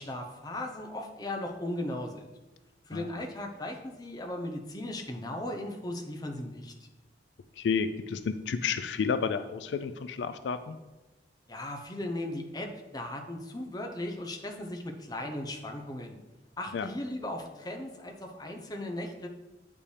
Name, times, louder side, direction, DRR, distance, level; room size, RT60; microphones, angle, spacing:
voice 1, 0.0-2.3 2.8-6.7 11.5-16.2 16.6-19.3, left 1 dB, 20° left, 3 dB, 0.8 m, -37 dB
voice 2, 2.9-3.2 7.6-10.8 16.7-16.9, left 6 dB, 80° left, 11 dB, 0.4 m, -31 dB
8.5 x 5.2 x 3.3 m, 1.1 s
head